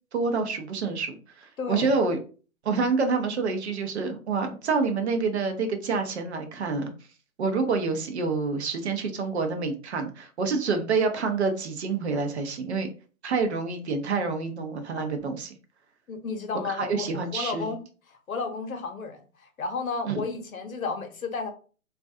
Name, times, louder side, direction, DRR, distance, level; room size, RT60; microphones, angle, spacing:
voice 1, 0.1-2.2 2.6-6.9 7.4-12.9 13.2-15.6 16.6-17.7 20.0-20.2, right 4 dB, 50° right, 6 dB, 0.7 m, -27 dB
voice 2, 1.6-1.9 16.1-17.8 18.1-21.5, left 4 dB, 75° left, 6 dB, 0.8 m, -33 dB
2.4 x 2.2 x 2.6 m, 0.37 s
figure-of-eight pair, 135°, 42 cm